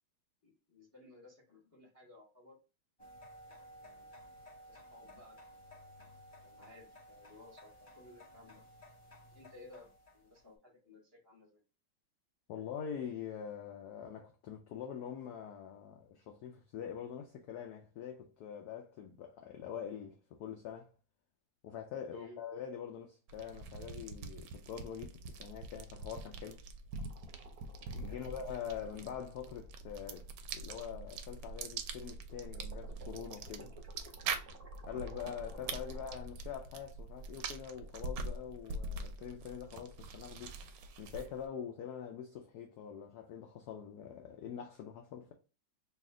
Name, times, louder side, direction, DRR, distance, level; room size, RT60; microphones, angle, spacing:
voice 1, 0.4-2.6 3.4-4.1 4.7-5.8 6.4-8.8 9.3-11.6 22.1-22.4 28.0-28.2, left 2 dB, 10° left, 0.9 m, -58 dB
sound 1, 3.0-10.5, equal, 60° left, 0.4 m, -56 dB
voice 2, 12.5-20.9 21.6-26.6 27.9-30.3 30.5-33.8 34.8-40.6 41.0-45.3, left 8 dB, 75° left, 0.9 m, -44 dB
sound 2, 23.3-41.5, right 3 dB, 75° right, 1.1 m, -44 dB
sound 3, 26.9-31.9 32.3-36.1, right 2 dB, 45° right, 0.4 m, -56 dB
3.2 x 2.7 x 3.5 m
omnidirectional pair, 2.1 m